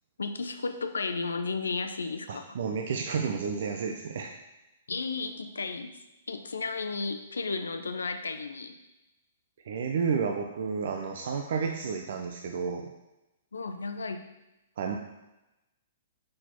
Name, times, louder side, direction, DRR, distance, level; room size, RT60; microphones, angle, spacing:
voice 1, 0.2-2.5 4.9-5.9 6.3-8.8 13.5-14.3, left 4 dB, 80° left, 8 dB, 0.7 m, -33 dB
voice 2, 2.3-4.4 9.6-12.9 14.8-15.0, right 6 dB, 60° right, 3 dB, 0.7 m, -31 dB
6.3 x 6.0 x 4.5 m, 0.96 s
figure-of-eight pair, 115°, 0 cm